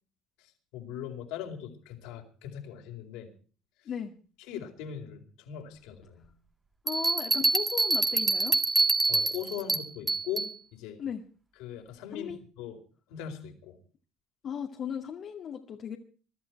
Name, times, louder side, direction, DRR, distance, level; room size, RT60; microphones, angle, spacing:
voice 1, 0.7-3.3 4.5-6.3 9.1-11.0 11.6-12.8 13.1-13.8, left 9 dB, 75° left, 3 dB, 4.5 m, -40 dB
voice 2, 6.8-8.6 11.0-11.2 12.1-12.4 14.4-16.0, left 8 dB, 55° left, 2 dB, 2.2 m, -36 dB
sound 1, 6.9-10.5, right 3 dB, 20° right, 2.2 m, -26 dB
22.5 x 12.5 x 4.7 m, 0.39 s
hypercardioid pair, 65°, 0 cm